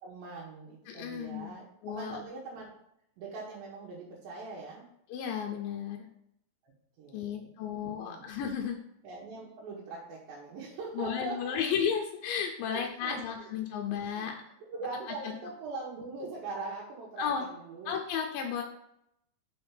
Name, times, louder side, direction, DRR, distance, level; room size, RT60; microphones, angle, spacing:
voice 1, 0.0-2.7 3.2-4.8 6.6-6.7 7.0-8.3 9.0-11.6 12.6-13.8 14.1-14.3 14.7-17.9, right 3 dB, 85° right, -5 dB, 2.9 m, -42 dB
voice 2, 0.9-1.5 1.8-2.2 5.1-6.0 7.1-8.8 11.0-14.4 17.2-17.4 17.9-18.6, left 7 dB, 90° left, 2 dB, 2.4 m, -33 dB
6.1 x 3.4 x 5.6 m, 0.76 s
omnidirectional pair, 4.1 m